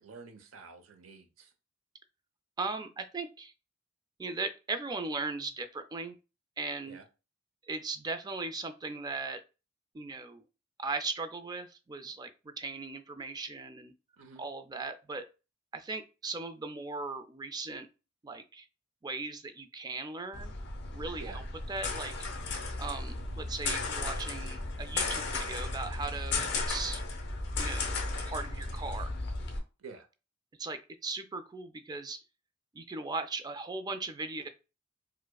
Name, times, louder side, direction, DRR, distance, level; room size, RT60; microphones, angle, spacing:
voice 1, 0.0-1.5 6.9-7.0 14.2-14.5 21.2-21.4 29.8-30.1, right 4 dB, 85° right, 7 dB, 0.7 m, -49 dB
voice 2, 2.6-3.5 4.2-6.2 6.6-7.0 7.6-9.4 9.9-10.4 10.8-13.9 14.4-15.3 15.7-17.9 18.2-18.7 19.0-20.5 20.9-22.1 22.8-27.0 27.5-27.9 28.3-29.2 30.6-32.2 32.7-34.5, right 3 dB, 20° right, 9 dB, 0.4 m, -38 dB
sound 1, 20.3-29.6, left 3 dB, 60° left, 0.7 m, -35 dB
4.7 x 2.1 x 2.3 m, 0.30 s
head